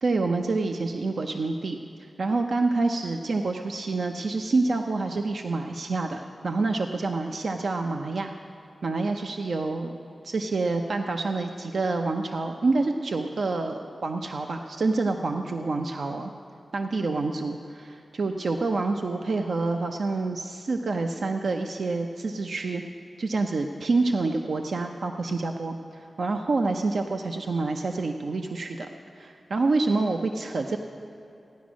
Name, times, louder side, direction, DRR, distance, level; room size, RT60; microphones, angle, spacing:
voice 1, 0.0-8.3 8.8-16.3 16.7-22.8 23.2-30.8, right 3 dB, 70° right, 4 dB, 0.6 m, -27 dB
15.0 x 10.5 x 6.2 m, 2.8 s
wide cardioid pair, 120°, 0 cm